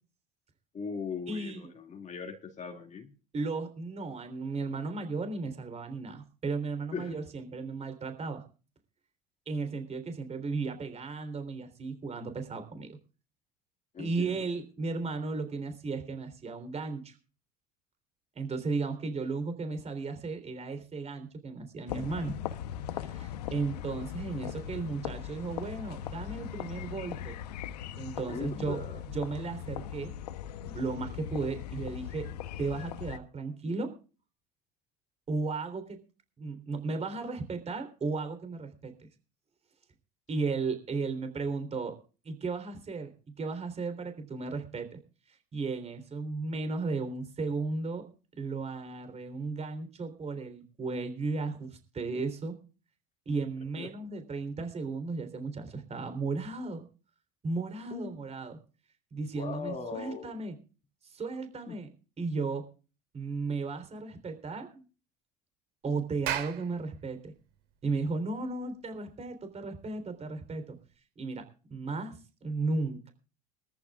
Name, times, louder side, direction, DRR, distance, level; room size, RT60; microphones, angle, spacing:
voice 1, 0.7-3.1 6.9-7.2 13.9-14.5 28.3-29.0 53.8-53.9 57.9-58.2 59.3-60.3 61.7-61.8, left 5 dB, 35° left, 4 dB, 2.4 m, -39 dB
voice 2, 1.3-1.7 3.3-8.4 9.5-13.0 14.0-17.1 18.4-22.3 22.9-27.4 28.0-28.8 29.1-30.1 30.6-32.3 32.6-33.9 35.3-36.0 36.4-38.9 40.3-42.0 42.2-45.0 45.3-48.1 48.3-52.6 53.3-56.8 57.4-58.6 59.1-60.5 61.0-61.9 62.2-62.7 63.1-64.8 65.8-67.3 67.8-70.8 71.2-73.1, right 4 dB, 35° right, 8 dB, 3.6 m, -35 dB
sound 1, 21.9-33.2, left 10 dB, 90° left, 0.9 m, -39 dB
Clapping, 66.3-70.9, right 11 dB, 70° right, 3.0 m, -40 dB
22.5 x 14.0 x 2.4 m, 0.35 s
hypercardioid pair, 80°, 20 cm